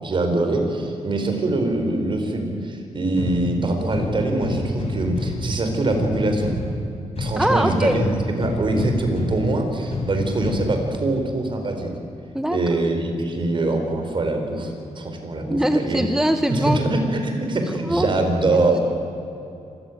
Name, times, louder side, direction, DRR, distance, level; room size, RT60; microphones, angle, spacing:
voice 1, 0.0-6.5 7.2-11.9 12.5-16.1 16.5-18.8, right 2 dB, 45° right, 4 dB, 4.7 m, -23 dB
sound 1, 3.2-11.2, left 2 dB, 60° left, 6.6 m, -30 dB
voice 2, 7.4-8.0 12.3-12.6 15.5-16.8 17.8-18.1, right 1 dB, 5° right, 7 dB, 1.2 m, -21 dB
27.0 x 15.5 x 9.4 m, 2.8 s
cardioid pair, 105°, 12 cm